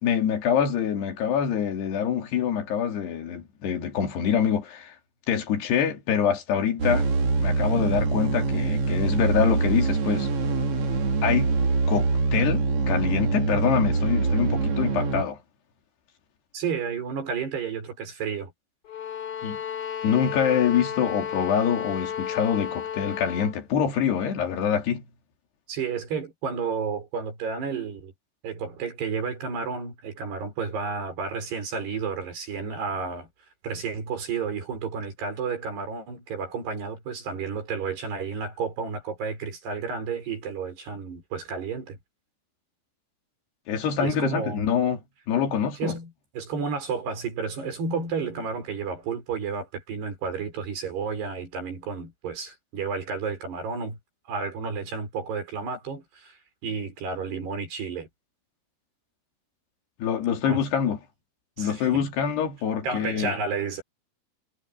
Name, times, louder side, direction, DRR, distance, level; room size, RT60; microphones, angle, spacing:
voice 1, 0.0-5.0 5.3-7.1 7.4-10.3 11.2-11.5 11.9-15.4 19.4-19.6 20.0-25.0 43.7-45.0 45.3-45.9 60.0-61.0 61.6-63.3, left 8 dB, 85° left, 4.8 m, -25 dB
sound 1, 6.8-15.2, right 4 dB, 40° right, 2.9 m, -24 dB
voice 2, 16.5-18.5 25.7-28.1 28.4-33.3 33.6-42.0 44.0-44.6 45.8-54.0 54.3-56.4 56.6-58.1 60.5-60.6 61.6-62.1 62.8-63.8, right 5 dB, 85° right, 8.0 m, -31 dB
sound 2, 18.9-23.6, left 9 dB, 50° left, 5.5 m, -33 dB
omnidirectional pair, 4.6 m